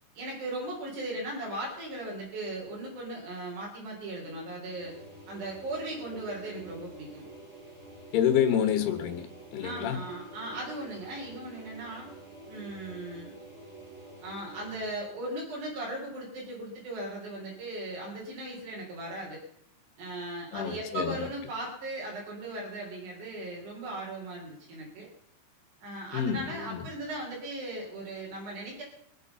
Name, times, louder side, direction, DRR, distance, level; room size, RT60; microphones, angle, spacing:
voice 1, 0.1-4.9 5.3-7.2 9.6-12.1 12.5-13.3 14.2-19.4 20.0-25.1 25.8-28.8, right 1 dB, 50° right, -4 dB, 5.0 m, -38 dB
sound 1, 4.6-15.0, right 2 dB, 15° right, 4.6 m, -48 dB
voice 2, 8.1-9.3 9.5-10.0 20.5-21.3 26.1-26.9, left 9 dB, 80° left, 7 dB, 3.4 m, -28 dB
24.5 x 8.3 x 5.6 m, 0.71 s
omnidirectional pair, 4.7 m